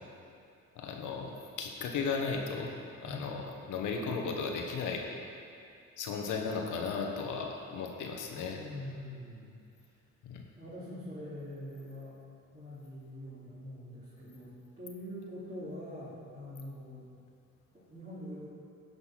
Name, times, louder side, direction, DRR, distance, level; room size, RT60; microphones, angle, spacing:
voice 1, 0.7-2.7 3.0-3.4 3.7-5.1 6.0-8.6 10.2-10.4, left 5 dB, 80° left, 2 dB, 1.3 m, -35 dB
voice 2, 8.5-9.6 10.6-12.2 12.5-17.1 17.9-18.5, left 1 dB, 25° right, -11 dB, 2.6 m, -44 dB
11.0 x 5.5 x 5.9 m, 2.4 s
cardioid pair, 90°, 30 cm